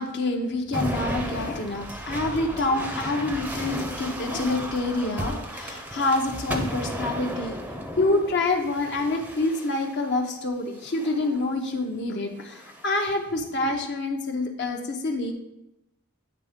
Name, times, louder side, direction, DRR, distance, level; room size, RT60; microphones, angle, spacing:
voice 1, 0.0-7.6 8.0-15.3, left 2 dB, 50° left, 3 dB, 0.8 m, -27 dB
sound 1, 0.7-10.1 10.8-11.3 12.4-13.1, equal, 5° right, 0.6 m, -34 dB
8.7 x 3.5 x 5.1 m, 0.90 s
head